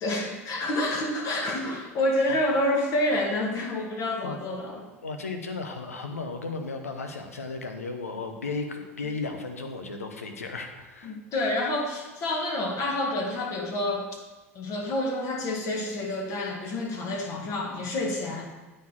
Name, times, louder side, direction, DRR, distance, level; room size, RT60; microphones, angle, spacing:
voice 1, 0.0-4.8 11.0-14.1 14.6-18.4, left 1 dB, 45° left, 0 dB, 1.8 m, -28 dB
voice 2, 5.0-11.1, left 3 dB, 85° left, 5 dB, 0.8 m, -35 dB
9.3 x 4.4 x 4.5 m, 1.2 s
hypercardioid pair, 75°, 8 cm